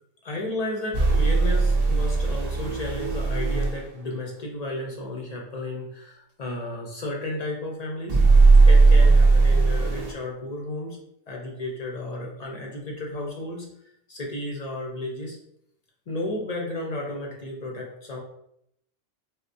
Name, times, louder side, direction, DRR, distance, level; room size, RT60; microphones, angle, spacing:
voice 1, 0.2-8.2 8.7-11.0 11.3-13.7 14.1-15.4 16.1-18.2, left 1 dB, 55° left, -1 dB, 0.4 m, -33 dB
sound 1, 0.9-3.8 8.1-10.1, right 3 dB, 60° right, 0.4 m, -17 dB
4.1 x 2.1 x 2.6 m, 0.75 s
omnidirectional pair, 1.3 m